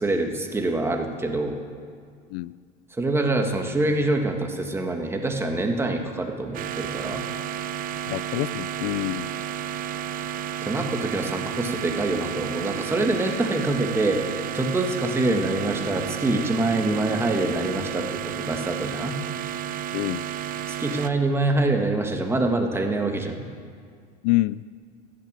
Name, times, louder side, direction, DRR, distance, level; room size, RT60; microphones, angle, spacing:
voice 1, 0.0-1.6 2.9-7.3 10.6-19.2 20.7-23.5, right 2 dB, 10° right, 3 dB, 1.6 m, -25 dB
sound 1, 6.5-21.1, right 10 dB, 45° right, 0.6 m, -32 dB
voice 2, 8.1-9.3 19.9-20.2 24.2-24.6, left 19 dB, 75° left, 18 dB, 0.4 m, -26 dB
13.0 x 9.4 x 9.0 m, 2.1 s
supercardioid pair, 120°, 21 cm